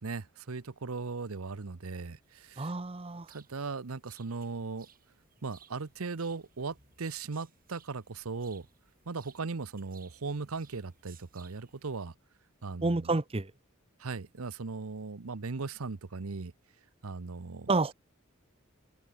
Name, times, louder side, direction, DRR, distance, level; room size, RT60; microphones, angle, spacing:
voice 1, 0.0-2.7 3.3-4.9 5.4-8.7 9.1-12.1 12.6-13.1 14.0-16.5 17.0-17.7, right 4 dB, 80° right, 0.9 m, -38 dB
sound 1, 2.2-12.1, right 8 dB, 45° right, 6.5 m, -62 dB
voice 2, 2.6-3.3 12.8-13.5 17.7-17.9, right 3 dB, 25° right, 0.8 m, -29 dB
head